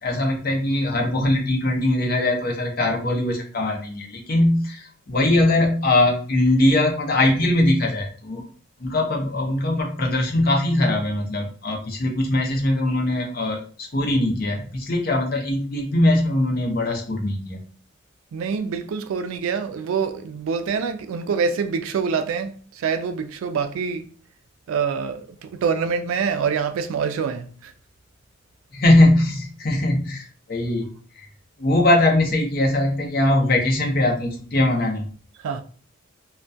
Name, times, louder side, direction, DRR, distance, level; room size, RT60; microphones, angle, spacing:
voice 1, 0.0-8.4 8.8-17.7 28.7-30.9 31.1-31.3 31.6-35.1, left 1 dB, 45° left, 0.5 m, -21 dB
voice 2, 18.3-24.1 24.7-27.7 35.4-35.6, right 6 dB, 85° right, 0.3 m, -25 dB
2.3 x 2.2 x 2.5 m
head